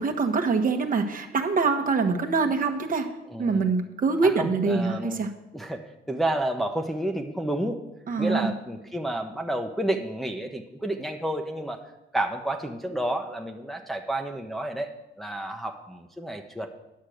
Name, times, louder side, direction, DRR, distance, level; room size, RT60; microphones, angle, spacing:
voice 1, 0.0-3.1 3.4-5.3 8.1-8.5, right 4 dB, 45° right, 5 dB, 1.2 m, -24 dB
voice 2, 3.3-3.7 4.2-5.2 5.5-7.8 8.2-11.8 12.1-14.9 15.2-16.7, right 1 dB, ahead, 2 dB, 0.9 m, -30 dB
10.5 x 6.4 x 6.4 m, 0.96 s
cardioid pair, 90°, 20 cm